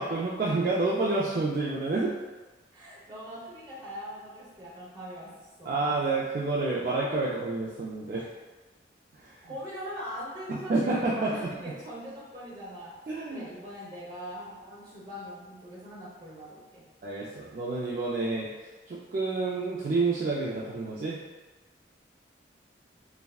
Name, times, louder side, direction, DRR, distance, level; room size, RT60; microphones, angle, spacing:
voice 1, 0.0-2.1 5.6-8.3 9.1-9.4 10.5-11.5 13.1-13.4 17.0-21.2, right 3 dB, 45° right, -6 dB, 0.3 m, -29 dB
voice 2, 2.7-5.8 9.4-12.9 13.3-16.8, equal, 25° right, -8 dB, 0.9 m, -41 dB
3.4 x 2.1 x 2.3 m, 1.2 s
head